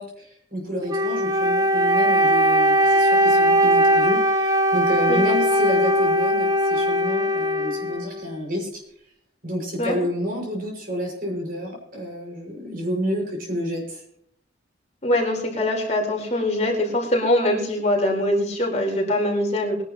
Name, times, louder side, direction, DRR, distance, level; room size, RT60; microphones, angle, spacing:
voice 1, 0.0-8.8 9.4-14.0, equal, 50° right, -1 dB, 6.2 m, -29 dB
Wind instrument woodwind instrument, 0.9-8.4, equal, 20° right, 1.2 m, -20 dB
voice 2, 15.0-19.8, left 1 dB, 35° left, -1 dB, 4.2 m, -23 dB
23.0 x 11.0 x 3.1 m, 0.71 s
head